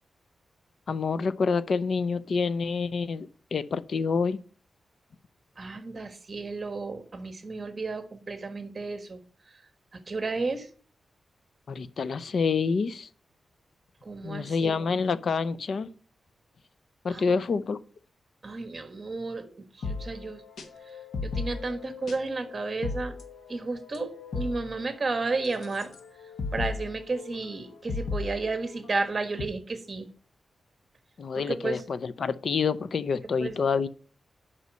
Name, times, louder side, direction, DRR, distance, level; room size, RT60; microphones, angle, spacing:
voice 1, 0.9-4.4 11.7-13.1 14.2-15.9 17.0-17.8 31.2-33.9, left 5 dB, 55° left, 0.5 m, -27 dB
voice 2, 5.6-9.2 10.1-10.7 14.0-14.8 17.1-17.3 18.4-20.4 21.2-23.1 23.5-25.9 26.5-30.1 31.3-31.8 33.4-33.6, right 3 dB, 30° right, 1.3 m, -32 dB
sound 1, 19.8-29.4, left 4 dB, 80° left, 1.2 m, -37 dB
8.3 x 5.5 x 6.2 m
wide cardioid pair, 155°, 0 cm